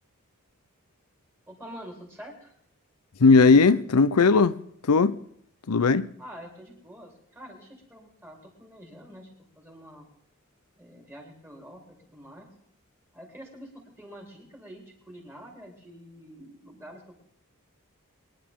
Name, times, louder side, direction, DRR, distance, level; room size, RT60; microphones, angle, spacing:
voice 1, 1.5-2.5 6.2-10.1 10.8-12.5 13.1-17.2, equal, 10° right, 3.9 m, -46 dB
voice 2, 3.2-4.5 4.9-5.2 5.7-6.1, left 4 dB, 90° left, 0.7 m, -18 dB
23.0 x 10.5 x 3.7 m
head